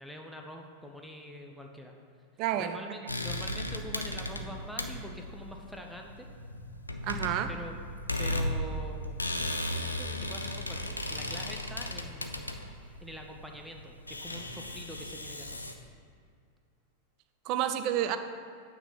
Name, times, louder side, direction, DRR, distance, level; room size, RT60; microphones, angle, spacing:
voice 1, 0.0-1.9 2.6-6.3 7.5-7.8 8.2-9.2 9.8-12.5 12.8-15.6, equal, ahead, 2 dB, 0.8 m, -45 dB
voice 2, 2.4-2.8 7.0-7.5 17.4-18.2, right 11 dB, 40° right, 10 dB, 0.5 m, -29 dB
sound 1, 3.1-15.7, left 1 dB, 85° left, 0.6 m, -36 dB
8.9 x 4.8 x 5.8 m, 2.2 s
figure-of-eight pair, 90°, 0 cm